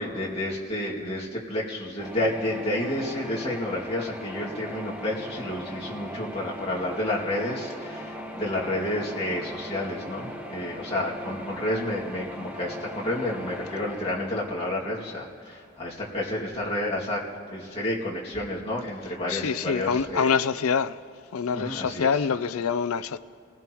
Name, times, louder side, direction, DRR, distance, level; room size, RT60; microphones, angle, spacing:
voice 1, 0.0-17.2 17.5-20.3 21.5-22.1, left 1 dB, 25° left, 2.3 m, -30 dB
sound 1, 2.0-15.8, equal, 5° right, 1.0 m, -39 dB
voice 2, 19.3-21.0 21.3-23.2, left 6 dB, 85° left, 0.5 m, -25 dB
27.5 x 16.5 x 3.1 m
head